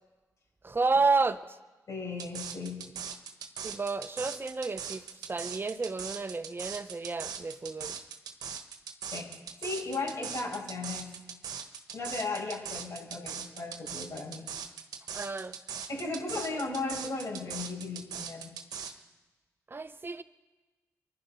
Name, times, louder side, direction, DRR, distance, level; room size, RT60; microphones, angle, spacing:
voice 1, 0.6-1.6 3.6-8.0 15.1-15.5 19.7-20.2, right 4 dB, 35° right, 1.0 m, -31 dB
voice 2, 1.9-2.8 9.1-9.3 9.6-11.1 11.9-14.5 15.9-18.5, left 3 dB, 60° left, 7.7 m, -36 dB
sound 1, 2.2-18.9, right 7 dB, 90° right, 1.2 m, -40 dB
24.5 x 10.5 x 5.5 m
cardioid pair, 55°, 6 cm